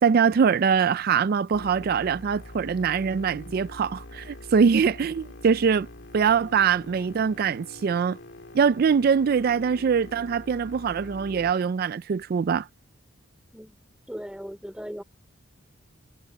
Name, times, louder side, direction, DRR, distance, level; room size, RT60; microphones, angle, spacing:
voice 1, 0.0-5.9 6.1-8.2 8.5-12.7, right 6 dB, 50° right, 0.3 m, -23 dB
sound 1, 1.5-11.5, left 1 dB, 60° left, 2.5 m, -44 dB
voice 2, 14.1-15.0, equal, 5° right, 2.7 m, -37 dB
head